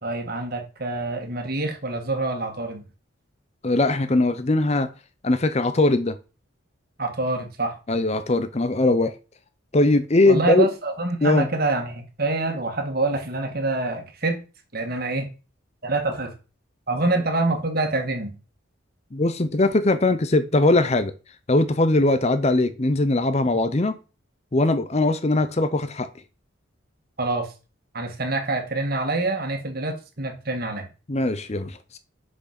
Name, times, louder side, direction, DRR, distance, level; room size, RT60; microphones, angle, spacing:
voice 1, 0.0-2.8 7.0-7.8 10.3-14.4 14.7-15.3 15.8-16.3 16.9-18.3 27.2-27.5 27.9-30.9, right 2 dB, 45° right, 1.8 m, -26 dB
voice 2, 3.6-4.9 5.2-6.1 7.9-9.1 9.7-10.7 11.2-11.5 19.1-21.1 21.5-24.0 24.5-26.1 31.1-32.0, left 2 dB, 30° left, 0.6 m, -20 dB
6.2 x 6.2 x 5.9 m
head